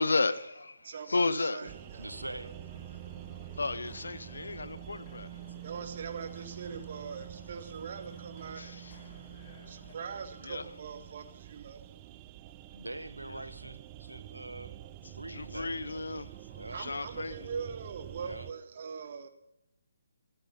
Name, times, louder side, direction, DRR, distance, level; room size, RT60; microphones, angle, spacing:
voice 1, 0.0-1.7 3.6-5.3 8.6-9.0 10.4-10.6 13.2-13.4 15.3-17.5, left 3 dB, 65° left, 1.0 m, -33 dB
voice 2, 0.8-2.6 5.4-9.1 9.6-12.2 16.7-19.3, right 6 dB, 45° right, 1.8 m, -42 dB
sound 1, 1.6-18.5, right 15 dB, 20° right, 0.7 m, -47 dB
sound 2, 1.8-10.0, left 4 dB, 35° left, 4.0 m, -56 dB
voice 3, 2.0-2.5 11.6-11.7 12.7-16.0 16.5-16.8 18.2-18.5, right 1 dB, 80° right, 1.4 m, -44 dB
14.0 x 13.5 x 5.8 m
figure-of-eight pair, 140°, 0 cm